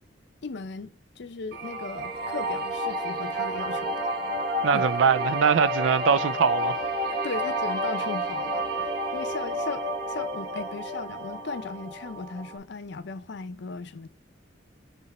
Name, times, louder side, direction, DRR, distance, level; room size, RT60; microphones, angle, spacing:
voice 1, 0.4-4.1 4.7-4.9 7.2-14.1, left 4 dB, 65° left, 0.6 m, -37 dB
sound 1, 1.5-12.6, right 1 dB, 55° right, 1.1 m, -30 dB
voice 2, 4.6-6.8, right 6 dB, 90° right, 0.4 m, -22 dB
8.1 x 3.2 x 4.1 m
head